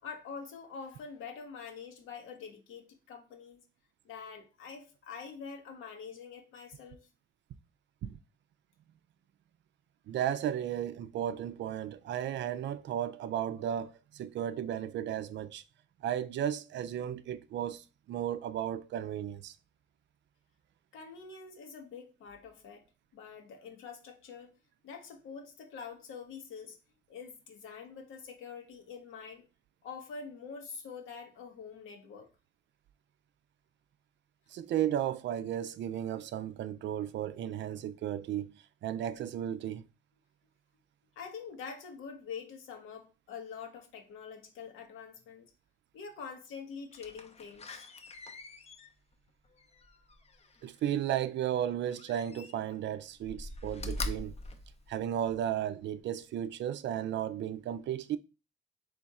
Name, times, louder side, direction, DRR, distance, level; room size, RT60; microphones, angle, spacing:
voice 1, 0.0-3.6 4.0-7.1 20.9-22.9 23.1-24.5 24.8-26.8 27.1-29.5 29.8-32.3 41.2-45.5 45.9-47.9, left 5 dB, 85° left, 1.1 m, -45 dB
voice 2, 10.1-15.6 16.0-19.6 34.5-39.8 50.6-54.3 54.9-58.2, right 10 dB, 65° right, 0.4 m, -34 dB
Slam, 46.9-50.8 51.9-52.8 53.2-55.5 56.0-56.1, left 2 dB, 30° left, 0.6 m, -43 dB
3.5 x 3.2 x 4.1 m
cardioid pair, 90°, 20 cm